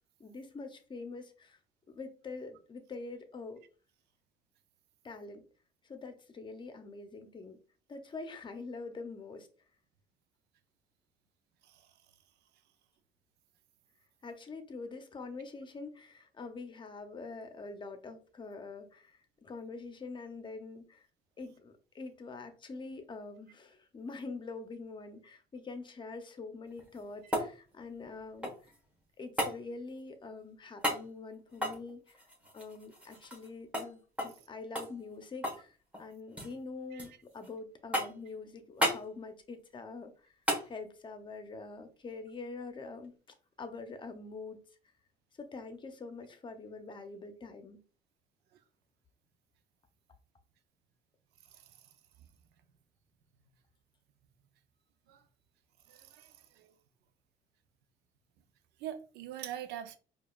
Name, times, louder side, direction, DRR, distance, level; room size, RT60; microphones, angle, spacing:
voice 1, 0.2-1.6 1.9-3.6 5.0-5.4 5.8-7.6 7.9-9.5 14.2-21.1 21.4-28.7 29.2-32.2 32.5-40.3 40.6-43.1 43.6-44.6 45.4-47.8, left 3 dB, 30° left, 0.7 m, -45 dB
sound 1, 26.7-28.8 29.4-29.6 30.8-31.0 31.5-33.5 33.7-33.9 34.2-34.4 34.7-35.7 35.9-36.5 37.0-37.5 37.9-38.3 38.8-39.0 40.5-40.7 43.0-43.1, equal, 5° right, 1.2 m, -34 dB
voice 2, 55.9-56.7 58.8-60.0, right 11 dB, 80° right, 0.5 m, -44 dB
4.8 x 2.4 x 2.3 m
cardioid pair, 110°, 17 cm